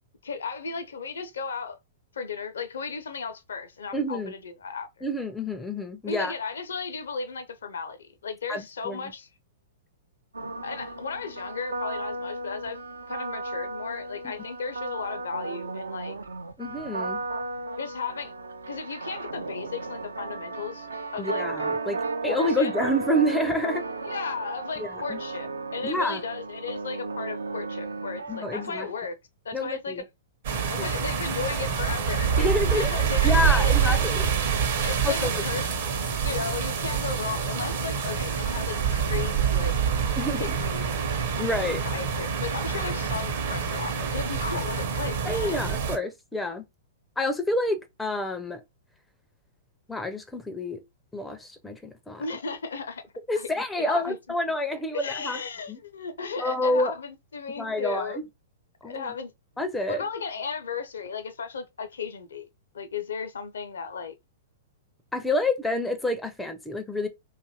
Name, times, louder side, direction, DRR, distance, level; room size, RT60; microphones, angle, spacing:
voice 1, 0.2-1.8 2.1-4.9 6.1-9.3 10.6-12.8 13.1-16.2 17.8-18.3 18.7-20.9 21.1-21.5 22.2-22.7 24.0-29.2 29.4-30.0 30.7-34.0 34.8-35.7 36.2-39.8 40.4-40.9 41.8-45.7 52.2-53.0 53.4-53.5 53.8-54.2 54.9-58.2 58.8-59.3 59.9-62.5 62.7-64.1, left 5 dB, 70° left, 0.5 m, -35 dB
voice 2, 3.9-4.3 5.0-6.3 8.5-9.0 16.6-17.2 21.2-22.0 22.2-23.8 24.8-25.2 25.8-26.2 28.3-28.9 29.5-30.0 30.8-30.9 32.4-32.9 33.2-34.3 35.0-35.4 40.2-40.6 41.4-41.8 45.2-46.7 47.2-48.6 49.9-50.8 51.1-52.2 53.3-55.4 55.7-55.8 56.4-56.9 57.6-58.2 58.8-59.1 59.6-60.0 65.1-67.1, left 1 dB, 5° left, 0.4 m, -28 dB
sound 1, 10.3-28.9, right 3 dB, 80° right, 0.4 m, -34 dB
sound 2, 30.4-46.0, right 7 dB, 60° right, 0.8 m, -26 dB
2.6 x 2.4 x 2.8 m
figure-of-eight pair, 105°, 0 cm